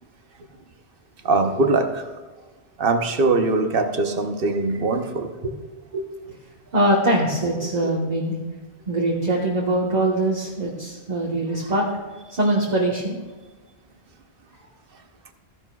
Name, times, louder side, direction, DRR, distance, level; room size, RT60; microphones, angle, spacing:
voice 1, 1.2-2.1 2.8-5.3, right 3 dB, 60° right, 6 dB, 1.0 m, -21 dB
voice 2, 6.7-8.4 8.9-11.9 12.3-13.2, right 1 dB, 40° right, -3 dB, 1.3 m, -22 dB
15.0 x 11.0 x 2.3 m, 1.3 s
omnidirectional pair, 1.1 m